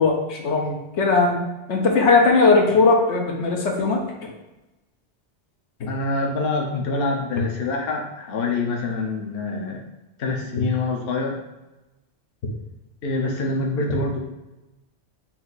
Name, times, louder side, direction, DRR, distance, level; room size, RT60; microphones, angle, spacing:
voice 1, 0.0-1.4 1.7-4.0, left 3 dB, 80° left, 0 dB, 1.1 m, -18 dB
voice 2, 5.9-9.8 10.2-11.4 13.0-14.2, left 3 dB, 60° left, 1 dB, 0.9 m, -25 dB
4.3 x 2.7 x 3.9 m, 1.0 s
omnidirectional pair, 1.2 m